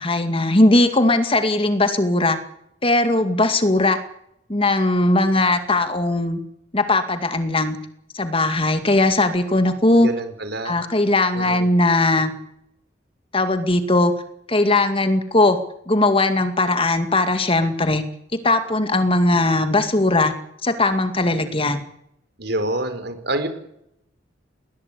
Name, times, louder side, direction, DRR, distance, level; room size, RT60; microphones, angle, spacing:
voice 1, 0.0-2.4 2.8-4.0 4.5-6.4 6.7-7.8 8.1-10.1 10.6-12.3 13.3-14.1 14.5-15.6 15.9-18.0 18.3-20.3 20.6-21.8, left 2 dB, 30° left, 8 dB, 2.2 m, -19 dB
voice 2, 10.0-10.8 11.3-11.7 22.4-23.5, right 1 dB, 60° right, 9 dB, 4.6 m, -27 dB
21.0 x 18.5 x 8.4 m, 0.75 s
head